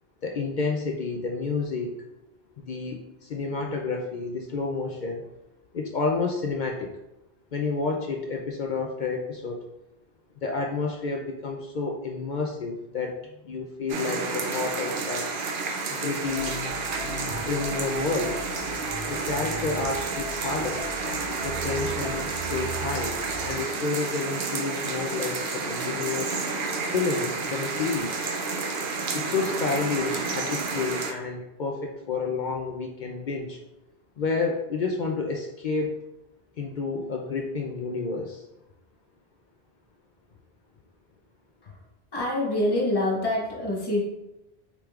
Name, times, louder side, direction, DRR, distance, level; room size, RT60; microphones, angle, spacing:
voice 1, 0.2-1.9 2.6-5.2 5.7-7.0 7.5-9.6 10.4-15.3 15.9-16.5 17.4-18.4 19.1-20.8 21.4-23.2 23.4-26.3 26.8-28.3 29.1-33.6 34.2-35.9 36.6-38.4, left 4 dB, 55° left, 1 dB, 0.6 m, -30 dB
sound 1, 13.9-31.1, right 4 dB, 60° right, 0.7 m, -30 dB
sound 2, 16.2-23.5, right 1 dB, 80° right, 1.2 m, -38 dB
voice 2, 42.1-44.0, left 1 dB, 25° left, -3 dB, 0.9 m, -26 dB
5.9 x 3.6 x 2.4 m, 0.93 s
omnidirectional pair, 1.1 m